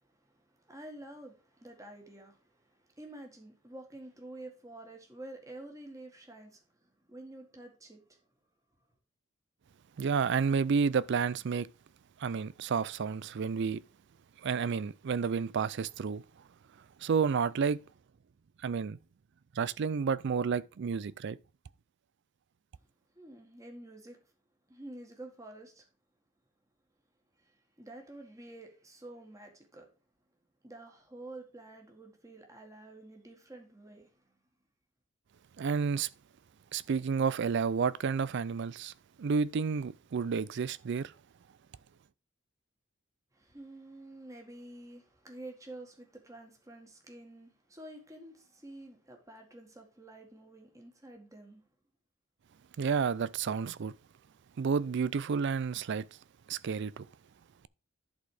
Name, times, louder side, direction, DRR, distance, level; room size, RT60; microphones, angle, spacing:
voice 1, 0.0-8.2 23.1-24.2 24.7-25.9 27.4-29.9 30.6-34.4 43.3-51.6, right 1 dB, 15° right, 1.7 m, -49 dB
voice 2, 10.0-11.7 12.2-13.8 14.4-16.2 17.0-17.8 18.6-19.0 19.5-21.4 35.6-36.1 36.7-38.9 39.2-41.1 52.8-53.9 54.6-56.1 56.5-57.1, right 6 dB, 55° right, 0.4 m, -30 dB
11.5 x 4.1 x 4.9 m
head